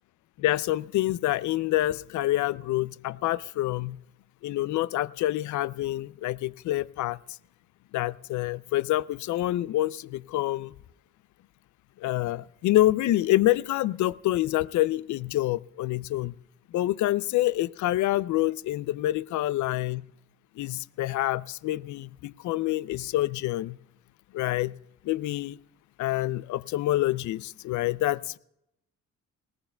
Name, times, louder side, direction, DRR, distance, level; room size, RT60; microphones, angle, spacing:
voice 1, 0.4-4.0 4.4-7.2 7.9-10.7 12.0-16.4 16.7-20.1 20.6-23.8 24.3-24.8 25.0-25.6 26.0-28.4, left 15 dB, 75° left, 20 dB, 0.5 m, -27 dB
21.0 x 18.5 x 2.2 m, 0.81 s
cardioid pair, 90°, 30 cm